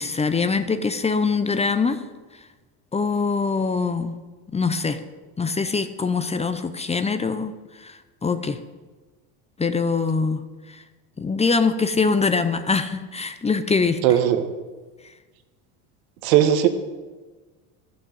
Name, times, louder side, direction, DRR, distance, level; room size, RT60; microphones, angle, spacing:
voice 1, 0.0-2.0 2.9-4.1 4.5-5.0 5.4-7.5 7.8-8.6 9.6-10.4 10.7-10.8 11.2-14.2, left 4 dB, 15° left, 10 dB, 0.7 m, -23 dB
voice 2, 14.0-14.4 16.2-16.7, right 11 dB, 85° right, 8 dB, 1.3 m, -17 dB
11.5 x 6.4 x 8.0 m, 1.3 s
supercardioid pair, 105°, 42 cm